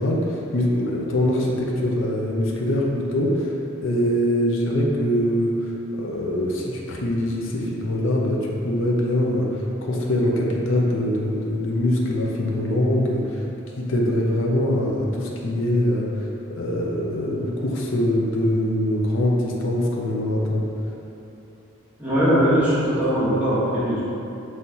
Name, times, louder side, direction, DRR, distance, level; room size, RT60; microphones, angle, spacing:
voice 1, 0.0-3.5 3.8-13.5 13.8-16.3 16.5-20.6, left 1 dB, 65° left, -2 dB, 0.5 m, -23 dB
voice 2, 22.0-24.0, equal, 10° right, -12 dB, 1.1 m, -20 dB
5.4 x 3.2 x 2.8 m, 2.9 s
head